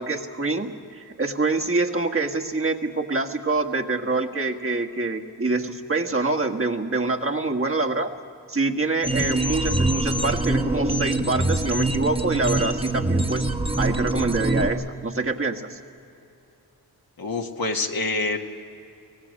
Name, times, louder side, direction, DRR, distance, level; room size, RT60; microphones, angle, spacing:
voice 1, 0.0-8.1 8.5-13.5 13.8-15.8, right 3 dB, 35° right, 3 dB, 1.5 m, -25 dB
sound 1, 9.0-14.7, right 2 dB, 15° right, 1.2 m, -24 dB
voice 2, 17.2-18.4, left 3 dB, 65° left, 3 dB, 1.6 m, -26 dB
24.5 x 18.0 x 6.5 m, 2.7 s
cardioid pair, 60°, 39 cm